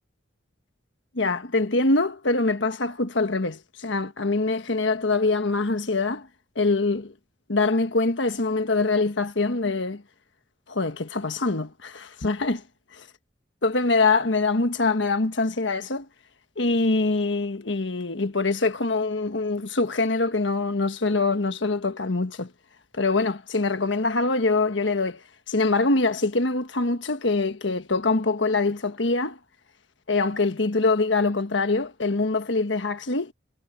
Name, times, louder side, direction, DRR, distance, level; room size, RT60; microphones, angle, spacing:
voice 1, 1.1-6.3 6.5-7.1 7.5-10.0 10.7-12.6 13.0-13.1 13.6-16.1 16.6-22.5 22.9-25.2 25.5-29.4 30.1-33.3, left 3 dB, 70° left, 1.4 m, -24 dB
head